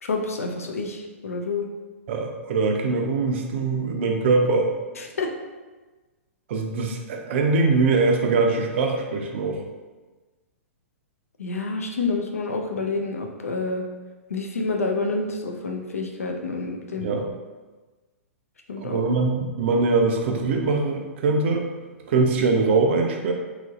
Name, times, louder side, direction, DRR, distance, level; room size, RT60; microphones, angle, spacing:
voice 1, 0.0-1.7 5.0-5.3 11.4-13.8 14.3-17.1 18.7-19.0, left 3 dB, 85° left, 3 dB, 0.4 m, -28 dB
voice 2, 2.1-4.7 6.5-9.6 17.0-17.3 18.8-21.7 22.1-23.3, right 3 dB, 55° right, 2 dB, 0.4 m, -22 dB
3.0 x 2.5 x 2.5 m, 1.3 s
hypercardioid pair, 115°, 8 cm